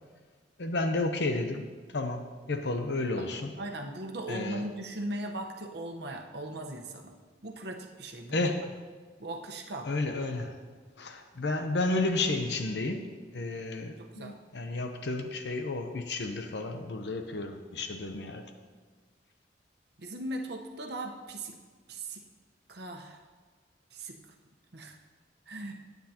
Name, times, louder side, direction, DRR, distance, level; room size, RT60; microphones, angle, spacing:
voice 1, 0.6-3.5 4.3-4.7 8.3-8.7 9.8-10.6 11.0-13.1 13.3-18.4, left 2 dB, 70° left, 6 dB, 0.8 m, -32 dB
voice 2, 3.6-7.1 7.4-8.5 9.2-9.9 14.0-14.3 20.0-21.6 21.9-22.2 22.7-23.2 23.9-24.2 24.7-24.9 25.5-25.8, right 1 dB, 65° right, 3 dB, 1.1 m, -38 dB
17.0 x 9.4 x 2.9 m, 1.5 s
head